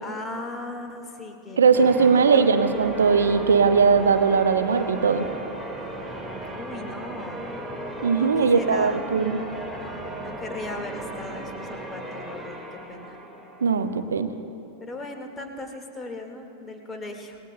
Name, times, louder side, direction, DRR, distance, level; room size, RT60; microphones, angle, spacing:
voice 1, 0.0-2.7 6.5-7.4 8.1-9.0 10.2-12.6 12.9-13.2 14.8-17.4, left 2 dB, 20° left, 4 dB, 1.7 m, -37 dB
voice 2, 1.6-5.3 8.0-9.4 13.6-14.3, right 5 dB, 70° right, 9 dB, 0.8 m, -19 dB
Church bell, 1.7-14.0, right 1 dB, 5° right, 1.8 m, -36 dB
27.0 x 20.0 x 2.2 m, 2.8 s
figure-of-eight pair, 90°, 0 cm